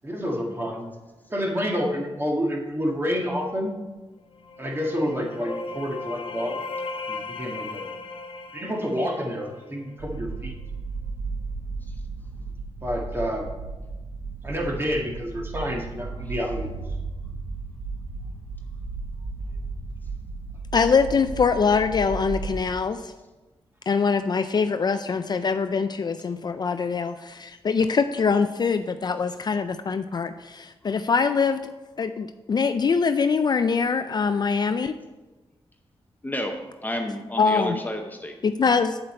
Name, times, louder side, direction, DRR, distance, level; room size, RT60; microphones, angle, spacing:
voice 1, 0.0-0.9 1.3-3.8 4.6-6.6 7.1-7.9 8.5-10.5 12.8-13.5 14.4-16.7, equal, 20° right, 0 dB, 1.7 m, -28 dB
sound 1, 4.3-10.0, left 3 dB, 60° left, 0.8 m, -37 dB
sound 2, 10.0-22.6, right 3 dB, 90° right, 1.8 m, -34 dB
voice 2, 20.7-23.1 23.9-31.6 32.0-34.9 37.4-37.8 38.4-39.0, left 5 dB, 40° left, 10 dB, 0.4 m, -23 dB
voice 3, 36.2-38.4, left 1 dB, 15° left, 3 dB, 0.7 m, -32 dB
7.9 x 7.9 x 4.3 m, 1.1 s
cardioid pair, 95°, 10 cm